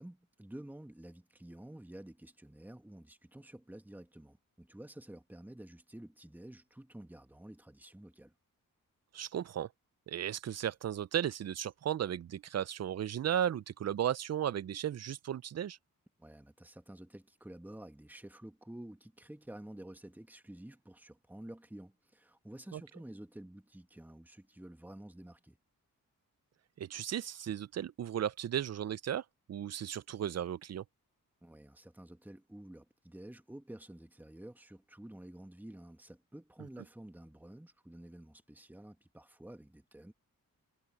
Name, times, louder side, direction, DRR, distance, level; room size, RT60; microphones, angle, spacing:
voice 1, 0.0-8.3 16.2-25.6 31.4-40.1, right 1 dB, 5° right, 1.7 m, -50 dB
voice 2, 9.1-9.7 10.1-15.8 22.7-22.8 26.8-30.8, right 10 dB, 50° right, 0.5 m, -35 dB
cardioid pair, 80°, 34 cm